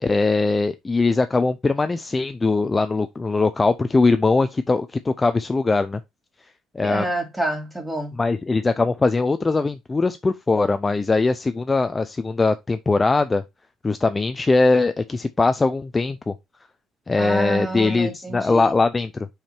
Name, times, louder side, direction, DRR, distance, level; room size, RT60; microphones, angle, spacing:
voice 1, 0.0-6.0 6.7-7.1 8.2-13.4 13.8-16.3 17.1-19.3, left 3 dB, 20° left, 0.5 m, -21 dB
voice 2, 6.8-8.2 17.2-18.7, right 1 dB, 5° right, 2.6 m, -28 dB
6.0 x 5.0 x 4.4 m
cardioid pair, 115°, 0 cm